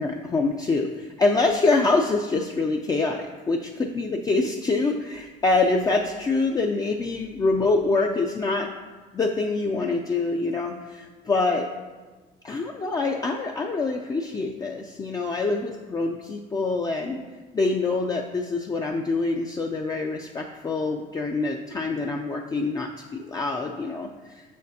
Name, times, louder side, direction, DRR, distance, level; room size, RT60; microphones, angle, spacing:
voice 1, 0.0-8.7 9.1-11.7 12.4-17.2 17.5-24.4, left 3 dB, 25° left, 1 dB, 0.4 m, -25 dB
6.4 x 6.1 x 2.7 m, 1.3 s
cardioid pair, 110°, 17 cm